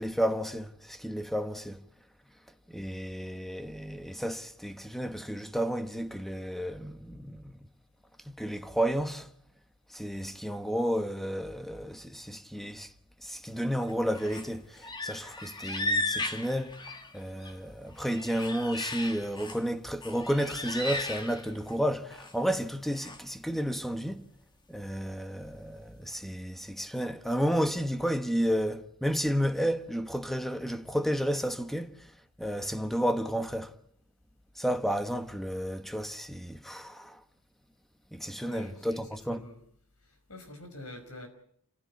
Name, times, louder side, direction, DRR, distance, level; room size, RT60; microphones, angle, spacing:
voice 1, 0.0-1.8 2.7-7.5 8.2-9.3 9.9-12.9 13.2-16.8 17.1-24.3 24.7-32.1 32.4-33.7 34.6-37.2 38.1-39.4, equal, ahead, 1.1 m, -32 dB
sound 1, 13.9-14.5 14.8-17.5 17.9-19.6 20.0-21.8 22.1-22.3 22.9-23.2, left 2 dB, 20° left, 1.9 m, -36 dB
voice 2, 38.4-39.6 40.3-41.3, left 1 dB, 75° left, 5.2 m, -46 dB
28.0 x 16.0 x 8.4 m
head